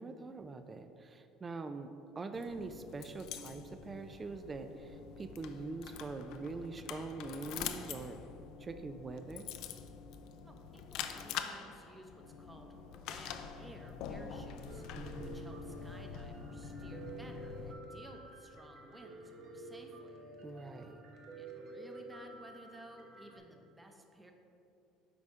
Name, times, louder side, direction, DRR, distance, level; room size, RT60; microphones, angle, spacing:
voice 1, 0.0-8.2 8.6-9.5 14.9-15.5 20.4-21.0, right 3 dB, 25° right, 8 dB, 0.3 m, -44 dB
sound 1, 2.3-17.7, left 7 dB, 70° left, 0.4 m, -45 dB
voice 2, 10.4-14.8 15.2-20.2 21.4-24.3, right 1 dB, 10° right, 3 dB, 0.8 m, -55 dB
Piano, 14.7-23.4, right 2 dB, 60° right, 0.9 m, -50 dB
8.4 x 5.0 x 3.6 m, 2.7 s
cardioid pair, 115°, 0 cm